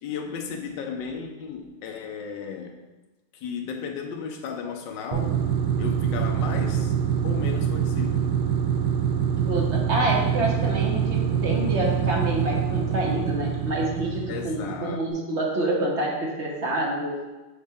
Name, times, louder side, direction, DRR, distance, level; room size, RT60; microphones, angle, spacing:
voice 1, 0.0-2.7 3.3-5.4 5.8-6.9 7.2-8.2 9.9-10.2 14.3-15.1, left 6 dB, 65° left, 3 dB, 1.3 m, -34 dB
sound 1, 5.1-14.9, right 8 dB, 85° right, 1.6 m, -25 dB
voice 2, 9.3-17.2, right 1 dB, 45° right, -2 dB, 0.9 m, -27 dB
8.0 x 4.2 x 3.6 m, 1.1 s
omnidirectional pair, 2.3 m